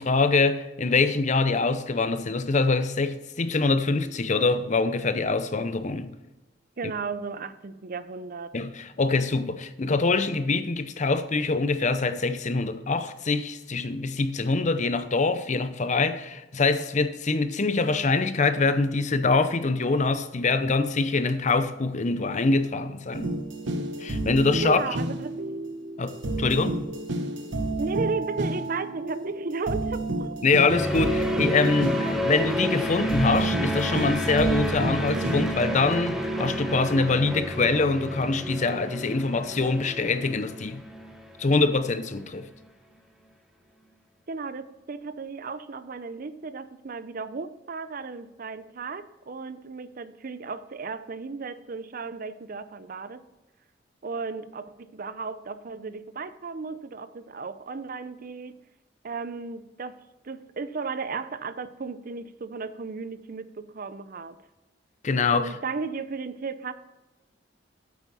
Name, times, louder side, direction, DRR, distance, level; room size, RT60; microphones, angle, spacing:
voice 1, 0.0-6.1 8.5-23.3 24.0-24.8 26.0-26.8 30.4-40.8 41.4-42.5 65.0-65.5, left 3 dB, 40° left, 0.6 m, -24 dB
voice 2, 6.8-8.5 24.6-25.4 27.8-30.3 44.3-53.2 54.0-58.6 59.0-60.0 60.2-64.4 65.3-66.7, right 4 dB, 50° right, 0.6 m, -35 dB
sound 1, 23.1-35.5, right 2 dB, 90° right, 1.2 m, -31 dB
sound 2, 30.7-42.0, equal, ahead, 1.0 m, -30 dB
8.5 x 8.2 x 4.1 m
head